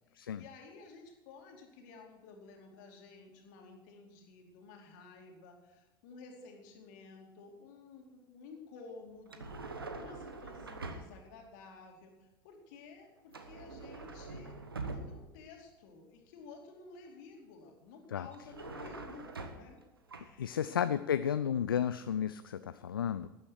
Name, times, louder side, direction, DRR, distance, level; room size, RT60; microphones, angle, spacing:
voice 1, 0.0-14.6 14.9-19.8 20.1-20.8, left 4 dB, 55° left, 2 dB, 2.7 m, -53 dB
sound 1, 9.3-11.3 13.3-15.4 18.3-19.8 20.1-20.3, right 3 dB, 80° right, 1.2 m, -44 dB
voice 2, 20.4-23.3, left 8 dB, 75° left, 13 dB, 0.4 m, -32 dB
13.0 x 9.9 x 5.9 m, 1.0 s
figure-of-eight pair, 75°, 12 cm